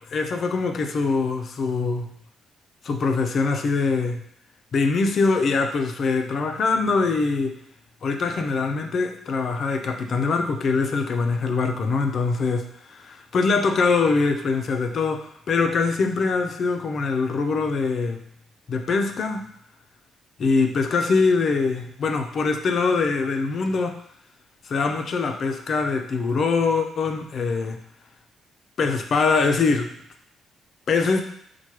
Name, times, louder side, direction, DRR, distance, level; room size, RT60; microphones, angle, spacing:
voice 1, 0.1-2.1 2.8-4.2 4.7-7.6 8.0-18.2 18.7-19.5 20.4-24.0 24.7-27.8 28.8-29.9 30.9-31.2, left 4 dB, 55° left, 5 dB, 0.4 m, -23 dB
4.3 x 2.2 x 3.1 m, 0.72 s
cardioid pair, 90°, 0 cm